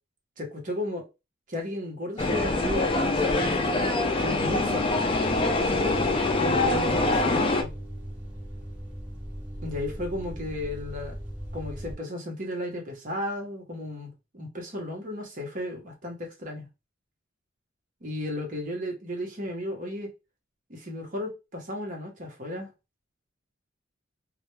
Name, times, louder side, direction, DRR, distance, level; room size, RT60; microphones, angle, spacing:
voice 1, 0.4-1.1 1.5-3.9 4.2-5.0 5.7-7.7 9.6-11.2 11.5-16.7 18.0-20.1 20.7-22.7, left 1 dB, 40° right, 0.8 m, -34 dB
sound 1, 2.2-7.6, left 2 dB, 25° left, 0.3 m, -24 dB
sound 2, 2.5-11.9, equal, 5° right, 1.0 m, -39 dB
2.2 x 2.1 x 2.9 m
head